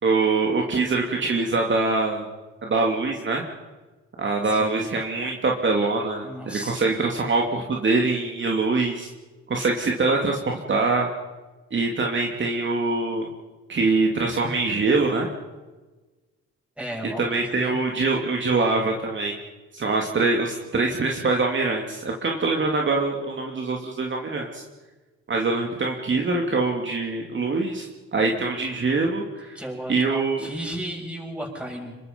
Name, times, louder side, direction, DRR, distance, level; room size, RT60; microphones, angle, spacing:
voice 1, 0.0-2.2 2.6-3.5 4.2-9.1 9.5-11.1 11.7-13.3 13.7-15.3 17.2-19.3 19.7-24.6 25.3-29.6 29.9-30.5, right 3 dB, 40° right, 0 dB, 2.8 m, -24 dB
voice 2, 4.4-4.9 6.2-6.8 16.8-17.8 29.5-31.9, right 1 dB, 5° right, -1 dB, 7.8 m, -34 dB
27.0 x 23.0 x 5.4 m, 1.2 s
cardioid pair, 90°, 30 cm